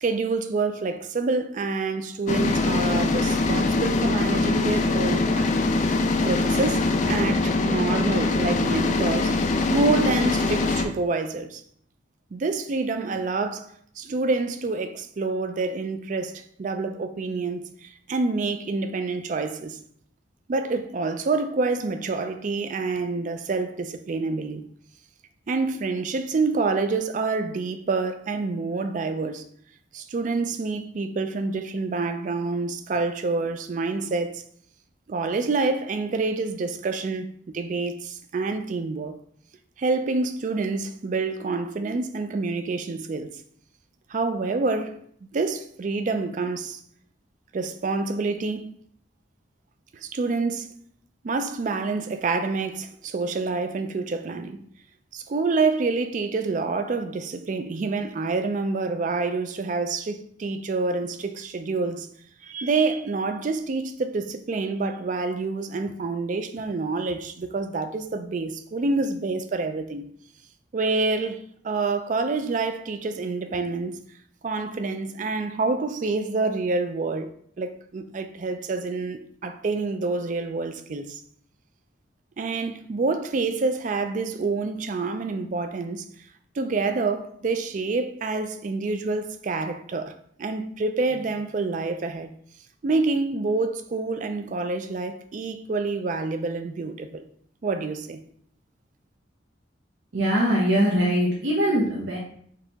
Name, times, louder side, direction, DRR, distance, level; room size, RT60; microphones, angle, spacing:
voice 1, 0.0-5.6 6.3-9.3 9.7-11.6 12.3-19.8 20.5-24.7 25.5-29.4 29.9-34.4 35.1-39.1 39.8-43.4 44.1-45.0 45.3-46.8 47.5-48.7 49.9-50.7 51.2-54.7 55.1-62.1 62.4-70.1 70.7-74.0 74.4-77.3 77.6-81.2 82.4-86.1 86.5-90.1 90.4-92.3 92.8-97.3 97.6-98.2, right 3 dB, 40° right, 0.3 m, -27 dB
sound 1, 2.3-10.8, left 3 dB, 40° left, 0.3 m, -23 dB
voice 2, 100.1-102.2, equal, 75° right, 0.9 m, -22 dB
4.8 x 2.8 x 3.4 m
head